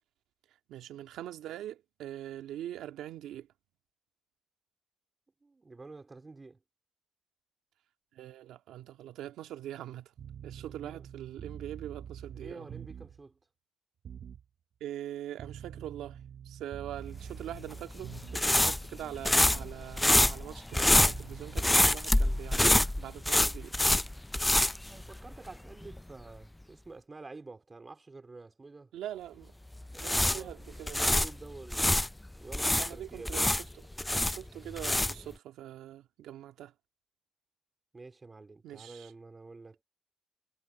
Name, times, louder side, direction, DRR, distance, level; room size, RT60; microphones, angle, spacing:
voice 1, 0.7-3.5 8.1-10.1 10.4-12.7 14.8-16.2 16.5-23.7 28.9-29.5 30.0-31.2 32.8-36.7 38.6-39.1, right 12 dB, 85° right, 1.8 m, -43 dB
voice 2, 5.4-6.6 10.6-11.1 12.3-13.4 24.9-28.9 29.9-32.1 32.4-33.4 37.9-39.8, right 3 dB, 25° right, 4.1 m, -49 dB
sound 1, 10.2-13.2 14.0-14.4 15.4-18.6 19.4-19.8 20.7-21.9, right 8 dB, 60° right, 0.9 m, -46 dB
sound 2, 17.5-25.6 25.8-26.0 29.8-32.1 32.5-35.3, left 1 dB, 10° left, 0.3 m, -26 dB
cardioid pair, 80°, 0 cm